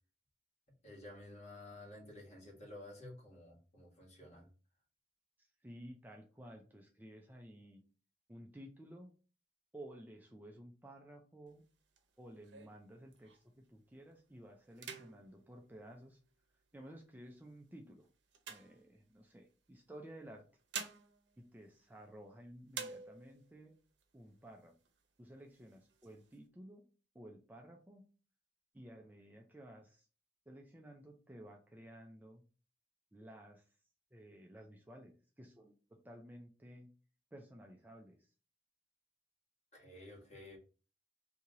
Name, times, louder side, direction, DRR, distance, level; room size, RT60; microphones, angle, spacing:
voice 1, 0.7-4.5 39.7-40.6, left 1 dB, 40° left, -2 dB, 1.6 m, -52 dB
voice 2, 5.4-7.8 8.3-9.1 9.7-11.6 12.2-16.2 16.7-18.1 18.5-20.5 21.4-23.8 24.1-24.7 25.2-26.9 27.1-28.1 28.7-30.1 30.5-32.4 33.1-33.7 34.1-36.9 37.3-38.3, right 1 dB, 10° right, 1 dB, 0.4 m, -54 dB
sound 1, 11.5-13.6 14.1-14.3 14.7-16.6 17.3-19.4 20.3-22.3 22.7-23.5 24.0-24.1 24.4-25.0 25.5-26.4, right 6 dB, 80° right, 0.7 m, -50 dB
3.1 x 2.8 x 3.7 m, 0.35 s
head